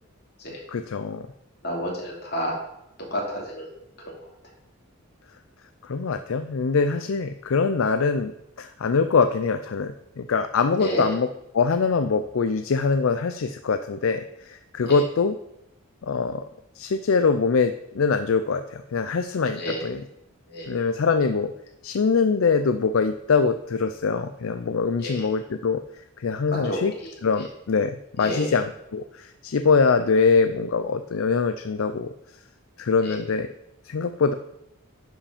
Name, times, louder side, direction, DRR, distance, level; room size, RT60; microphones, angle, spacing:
voice 1, 0.7-1.2 5.8-8.3 8.6-11.3 11.5-15.4 16.0-16.4 16.8-20.0 20.7-21.5 21.8-25.8 26.2-26.9 27.2-32.1 32.8-33.5 33.9-34.3, left 5 dB, 70° left, 9 dB, 0.5 m, -23 dB
voice 2, 1.6-2.6 3.0-3.7 4.0-4.2 10.8-11.1 14.8-15.0 19.6-19.8 20.5-20.8 25.0-25.3 26.5-27.5 28.2-28.5 33.0-33.2, equal, 50° left, -2 dB, 2.7 m, -31 dB
11.0 x 5.0 x 5.0 m, 0.85 s
head